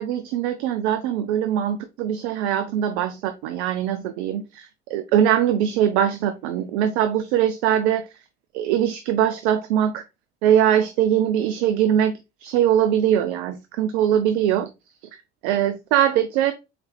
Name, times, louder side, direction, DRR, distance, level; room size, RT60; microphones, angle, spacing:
voice 1, 0.0-8.0 8.5-10.0 10.4-12.1 12.4-14.7 15.4-16.5, right 10 dB, 80° right, 9 dB, 0.5 m, -21 dB
4.1 x 4.1 x 3.2 m, 0.25 s
hypercardioid pair, 50°, 33 cm